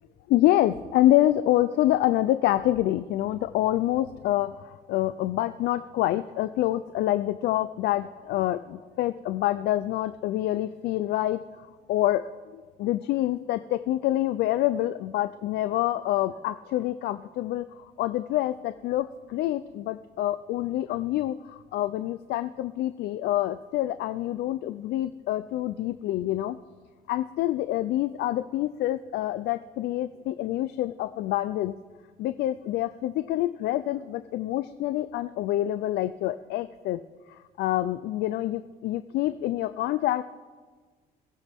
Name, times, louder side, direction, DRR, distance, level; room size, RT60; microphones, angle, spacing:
voice 1, 0.3-12.3 12.5-26.6 27.1-31.8 32.2-37.0 37.3-40.2, left 14 dB, 75° left, 12 dB, 0.5 m, -27 dB
21.5 x 15.5 x 3.6 m, 1.4 s
cardioid pair, 110°, 17 cm